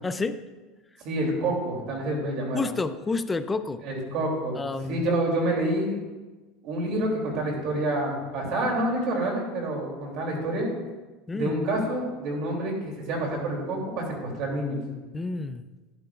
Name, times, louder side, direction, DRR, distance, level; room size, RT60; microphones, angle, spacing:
voice 1, 0.0-0.4 1.5-1.6 2.5-3.8 4.6-5.1 11.3-11.5 15.1-15.6, left 3 dB, 10° left, 11 dB, 0.4 m, -29 dB
voice 2, 1.0-2.6 3.8-4.6 4.9-6.0 6.6-10.7 11.3-14.8, right 1 dB, 50° right, -1 dB, 2.8 m, -28 dB
11.5 x 11.0 x 2.4 m, 1.2 s
supercardioid pair, 155°, 0 cm